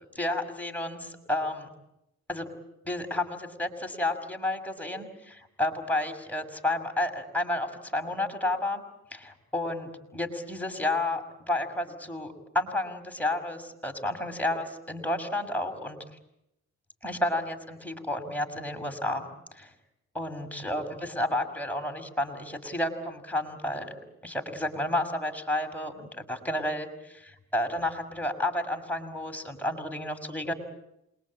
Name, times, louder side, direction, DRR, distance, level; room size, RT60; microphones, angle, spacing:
voice 1, 0.1-1.7 2.3-2.5 2.9-8.8 9.1-16.0 17.0-19.2 19.5-19.7 20.1-30.5, left 1 dB, 5° left, 5 dB, 6.0 m, -31 dB
27.5 x 22.5 x 8.8 m, 0.83 s
cardioid pair, 80°, 29 cm